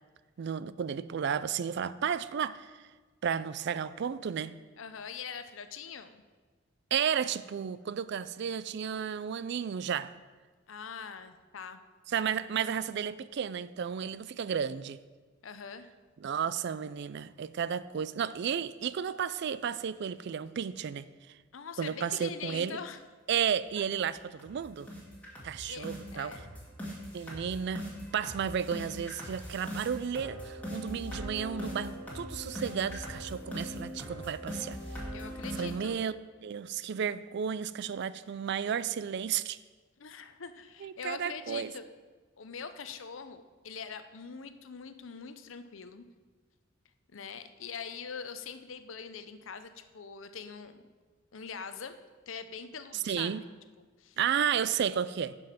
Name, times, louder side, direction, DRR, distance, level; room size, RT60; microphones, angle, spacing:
voice 1, 0.4-2.7 3.2-4.6 6.9-10.1 12.1-15.0 16.2-21.1 21.8-22.8 23.3-24.9 25.4-26.3 27.1-27.9 28.1-34.8 35.6-36.2 36.4-39.6 40.8-41.7 52.9-53.4 54.2-55.4, right 8 dB, 60° right, 0.4 m, -33 dB
voice 2, 4.8-6.2 10.7-11.8 15.4-15.9 21.5-23.0 25.7-26.5 35.1-36.0 40.0-41.8 42.4-46.1 47.1-50.8 51.3-51.9 52.3-53.3 53.8-54.2, left 6 dB, 80° left, 0.7 m, -43 dB
sound 1, 23.4-23.5 23.9-24.1 24.4-24.6 24.9-35.9, equal, 10° left, 2.2 m, -41 dB
11.0 x 5.3 x 5.8 m
head